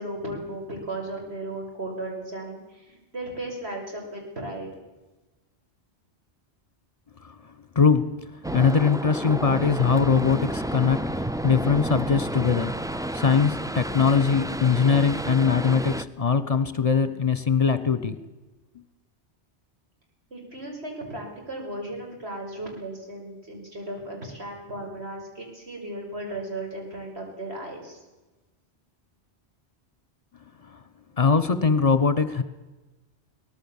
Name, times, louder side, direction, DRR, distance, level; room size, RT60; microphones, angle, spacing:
voice 1, 0.0-4.7 20.3-28.0, right 1 dB, 70° right, 1 dB, 6.5 m, -36 dB
voice 2, 7.7-8.1 8.5-12.7 13.1-18.2 31.2-32.4, left 5 dB, 35° left, 13 dB, 1.3 m, -21 dB
sound 1, 8.4-16.0, right 1 dB, 5° right, 0.3 m, -31 dB
23.5 x 18.0 x 7.3 m, 1.1 s
omnidirectional pair, 1.1 m